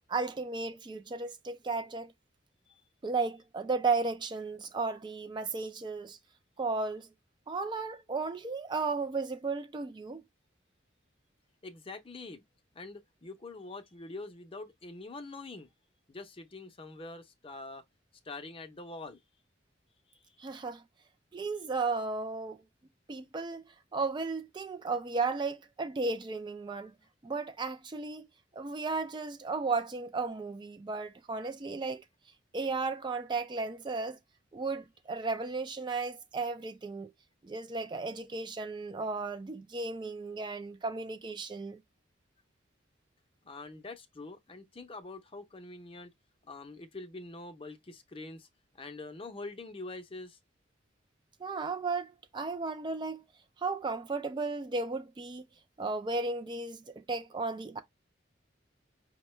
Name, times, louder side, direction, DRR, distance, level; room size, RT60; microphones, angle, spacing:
voice 1, 0.1-2.1 3.0-6.2 6.6-7.1 7.5-10.2 20.4-20.8 21.3-22.6 23.1-23.6 23.9-27.0 27.2-28.3 28.5-32.0 32.5-34.2 34.5-37.1 37.4-41.8 51.4-53.2 53.6-55.4 55.8-57.8, right 3 dB, 25° right, 0.3 m, -34 dB
voice 2, 11.6-12.4 12.7-15.7 16.1-17.8 18.2-19.2 20.1-20.4 43.4-46.1 46.4-48.5 48.7-50.4, left 3 dB, 30° left, 0.6 m, -45 dB
5.2 x 2.1 x 3.1 m
head